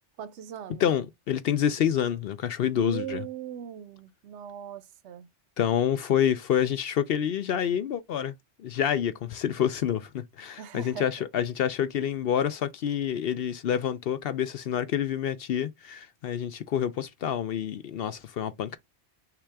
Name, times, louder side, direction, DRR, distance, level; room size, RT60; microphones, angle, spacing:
voice 1, 0.2-0.8 2.7-5.3 10.6-11.1, right 9 dB, 70° right, 0.8 m, -39 dB
voice 2, 0.8-3.2 5.6-8.3 8.6-18.8, left 9 dB, 65° left, 0.7 m, -27 dB
5.8 x 2.4 x 3.4 m
omnidirectional pair, 1.2 m